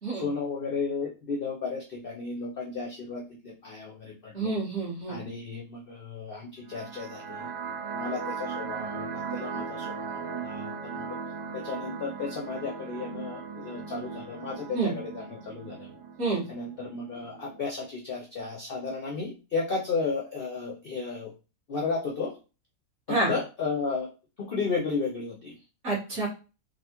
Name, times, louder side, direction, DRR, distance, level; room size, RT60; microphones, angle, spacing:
voice 1, 0.1-4.6 5.1-7.5 7.9-11.2 11.6-15.9 16.5-21.3 21.7-22.3 23.1-24.1 24.4-25.5, left 4 dB, 60° left, -2 dB, 0.6 m, -34 dB
voice 2, 4.3-5.2 14.7-14.9 16.2-16.4 23.1-23.3 25.8-26.3, right 3 dB, 55° right, -5 dB, 1.6 m, -28 dB
sound 1, 6.6-17.6, right 5 dB, 85° right, 0.4 m, -38 dB
3.8 x 2.3 x 2.8 m, 0.32 s
omnidirectional pair, 1.5 m